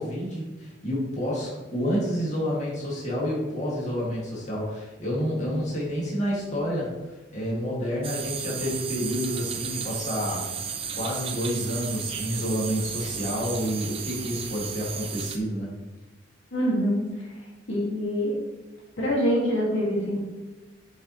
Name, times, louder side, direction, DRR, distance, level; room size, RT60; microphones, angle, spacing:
voice 1, 0.0-10.6 10.9-15.7, equal, 40° left, -5 dB, 2.3 m, -29 dB
sound 1, 8.0-15.4, right 6 dB, 30° right, 0.6 m, -33 dB
voice 2, 16.5-17.0 17.7-18.4 19.0-20.2, equal, 75° left, -4 dB, 2.2 m, -25 dB
7.3 x 7.1 x 3.2 m, 1.1 s
head